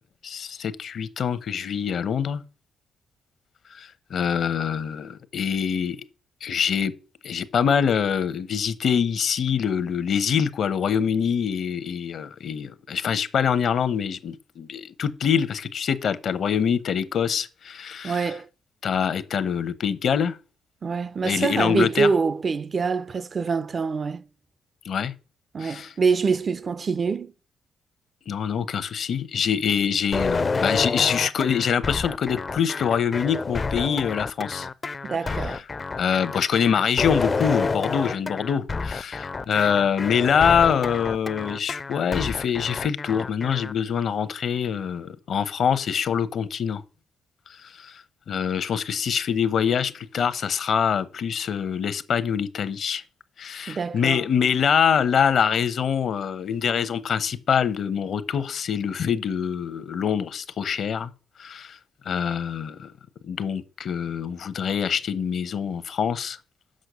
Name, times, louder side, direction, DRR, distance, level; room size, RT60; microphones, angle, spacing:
voice 1, 0.2-2.4 3.7-6.0 6.4-6.9 7.2-18.3 18.8-20.4 21.2-22.1 24.8-25.1 25.6-25.9 28.3-34.7 35.4-35.6 36.0-46.8 47.6-53.0 53.4-61.1 61.4-61.8 62.1-62.9 63.2-66.4, left 7 dB, 65° left, 0.8 m, -25 dB
voice 2, 18.0-18.5 20.8-24.2 25.5-27.3 35.0-35.6 53.7-54.2, right 5 dB, 45° right, 0.5 m, -25 dB
sound 1, 30.1-43.7, left 4 dB, 35° left, 0.5 m, -29 dB
6.4 x 5.8 x 6.7 m
cardioid pair, 80°, 0 cm